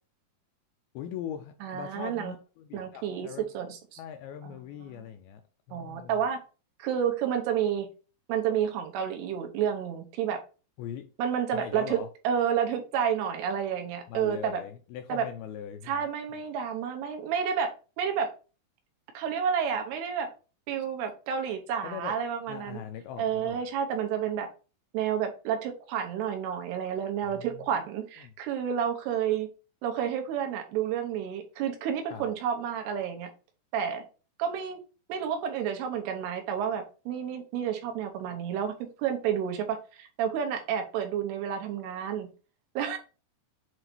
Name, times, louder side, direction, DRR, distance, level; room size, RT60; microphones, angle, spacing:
voice 1, 1.0-3.5 4.0-5.4 5.7-6.2 10.8-11.1 11.5-12.1 14.1-16.0 21.8-22.2 22.5-23.6 27.3-27.7 28.2-28.3 32.1-32.3, left 9 dB, 85° left, 2.2 m, -41 dB
voice 2, 1.6-2.3 2.7-3.3 3.5-4.0 4.4-4.6 4.9-5.0 5.7-6.4 6.8-7.9 8.3-10.4 11.2-14.6 15.1-15.3 15.8-17.7 18.0-18.3 19.1-20.3 20.7-22.8 23.2-24.5 24.9-29.5 29.8-33.3 33.7-34.1 34.4-34.8 35.1-42.3 42.8-43.0, right 8 dB, 75° right, 3.0 m, -30 dB
7.8 x 2.8 x 4.3 m
omnidirectional pair, 4.9 m